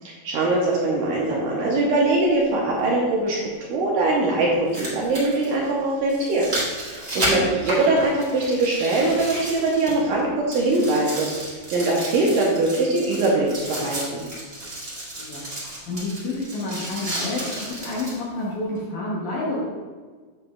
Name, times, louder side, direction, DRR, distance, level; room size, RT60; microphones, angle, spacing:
voice 1, 0.2-14.2, right 2 dB, 75° right, -4 dB, 2.2 m, -22 dB
sound 1, 1.2-1.3 3.3-3.4 4.5-10.2 10.5-18.2 18.8-18.9, right 1 dB, 40° right, 0.8 m, -32 dB
voice 2, 7.2-7.5 15.0-19.7, left 2 dB, 70° left, -5 dB, 2.0 m, -30 dB
8.5 x 6.9 x 2.3 m, 1.5 s
omnidirectional pair, 4.6 m